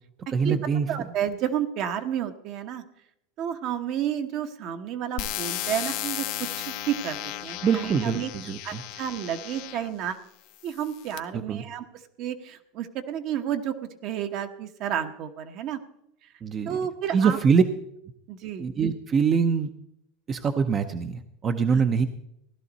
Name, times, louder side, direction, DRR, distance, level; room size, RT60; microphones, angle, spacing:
voice 1, 0.3-0.9 7.6-8.8 11.3-11.6 16.4-16.8 17.1-17.6 18.6-19.7 20.3-22.1, right 6 dB, 30° right, 7 dB, 0.7 m, -24 dB
voice 2, 0.9-2.8 3.4-8.3 8.6-10.2 10.6-15.8 16.6-17.4 18.3-18.6 21.7-21.8, right 10 dB, 55° right, 7 dB, 1.2 m, -31 dB
sound 1, 5.2-9.9 10.6-11.2, left 14 dB, 65° left, 0.8 m, -34 dB
16.5 x 11.5 x 4.1 m, 0.77 s
supercardioid pair, 115°, 0 cm